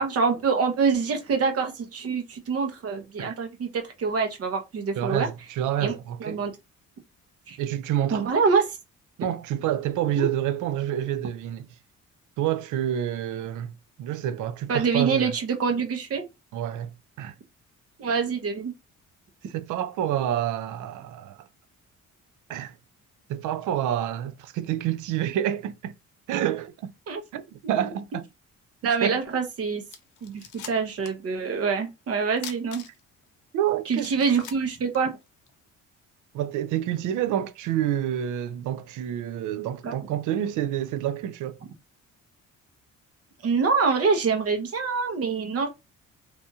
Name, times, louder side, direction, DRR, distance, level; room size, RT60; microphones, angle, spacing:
voice 1, 0.0-5.3 5.8-5.9 6.2-6.5 7.5-7.6 8.1-8.8 10.2-10.3 14.7-16.3 18.0-18.7 27.1-27.2 27.6-27.9 28.8-29.8 30.2-32.8 33.9-35.1 39.8-40.0 43.4-45.7, right 5 dB, 50° right, 0.8 m, -25 dB
voice 2, 5.0-6.4 7.6-8.2 9.2-11.7 12.4-13.7 14.0-15.3 16.5-17.3 19.5-21.5 22.5-22.7 23.3-25.9 26.3-26.9 27.3-28.3 29.0-29.2 33.5-34.2 36.3-41.6, right 11 dB, 80° right, 0.5 m, -28 dB
sound 1, 29.5-29.6 29.9-31.3 31.5-31.6 32.4-33.2 33.7-33.8 34.0-35.5, left 8 dB, 80° left, 0.6 m, -42 dB
2.9 x 2.7 x 2.3 m
cardioid pair, 90°, 30 cm